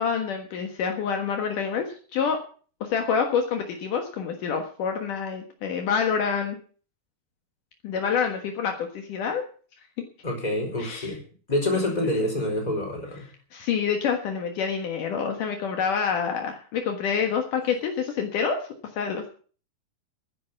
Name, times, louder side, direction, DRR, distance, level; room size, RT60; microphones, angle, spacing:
voice 1, 0.0-2.4 2.8-6.6 7.8-9.4 10.8-11.1 13.5-18.6 19.0-19.3, left 6 dB, 65° left, 4 dB, 2.9 m, -27 dB
voice 2, 10.2-11.2 11.5-13.2, left 1 dB, 10° left, 2 dB, 4.4 m, -26 dB
12.5 x 10.5 x 7.1 m, 0.42 s
omnidirectional pair, 4.1 m